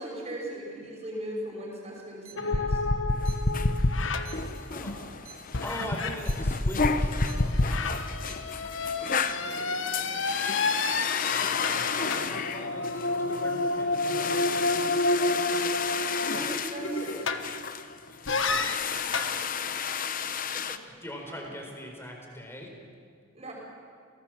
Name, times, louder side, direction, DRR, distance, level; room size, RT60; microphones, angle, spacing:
voice 1, 0.0-2.8 9.0-10.2 16.2-17.3 21.3-21.5 23.3-23.5, right 1 dB, 30° right, -2 dB, 5.9 m, -38 dB
sound 1, 2.2-2.3 3.2-3.3 4.3-4.4 5.3-5.4 6.3-6.4 7.3-7.4 8.3-8.4 9.3-9.4 10.3-10.4, right 11 dB, 80° right, 3.0 m, -46 dB
sound 2, 2.4-5.1 5.5-17.8 18.3-19.4, left 2 dB, 65° left, 1.3 m, -29 dB
sound 3, 3.1-20.8, left 6 dB, 40° left, 0.9 m, -33 dB
voice 2, 4.4-8.5 11.6-14.8 20.2-22.7, equal, 10° left, 2 dB, 4.2 m, -42 dB
30.0 x 18.5 x 7.5 m, 2.1 s
head